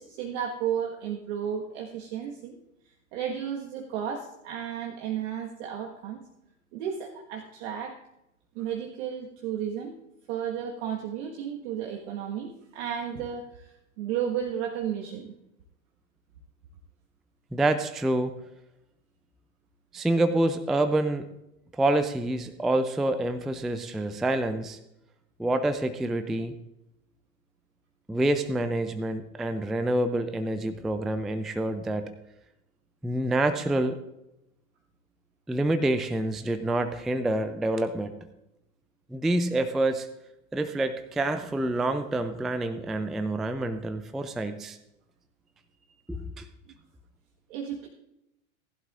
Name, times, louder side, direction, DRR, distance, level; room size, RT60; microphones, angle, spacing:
voice 1, 0.0-2.6 3.1-6.3 6.7-8.0 8.5-9.9 10.3-15.3 46.7-46.8 47.5-47.9, right 8 dB, 55° right, 1 dB, 1.5 m, -33 dB
voice 2, 17.5-18.4 19.9-21.3 21.7-24.8 25.4-26.5 28.1-32.1 33.0-34.0 35.5-38.2 39.1-40.1 40.5-44.8 46.1-46.5, right 1 dB, ahead, 10 dB, 0.3 m, -27 dB
18.5 x 11.5 x 2.5 m, 0.87 s
hypercardioid pair, 95°, 41 cm